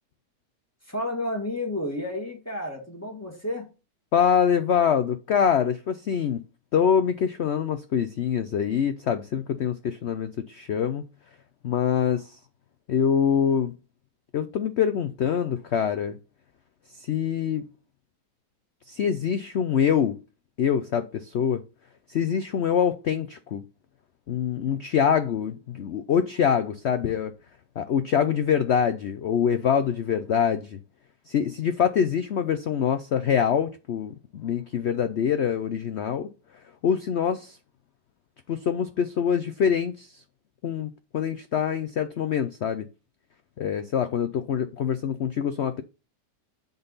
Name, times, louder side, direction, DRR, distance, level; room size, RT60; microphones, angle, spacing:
voice 1, 0.9-3.7, left 1 dB, 10° left, 1.7 m, -31 dB
voice 2, 4.1-6.4 6.7-11.0 11.6-12.4 12.9-13.7 14.3-16.2 16.9-17.6 18.9-20.2 20.6-21.6 22.1-23.6 24.3-27.3 27.8-30.8 31.3-36.3 36.8-37.6 38.5-40.2 40.6-42.9 43.6-45.8, left 8 dB, 85° left, 0.6 m, -25 dB
10.5 x 4.0 x 4.0 m
omnidirectional pair, 1.9 m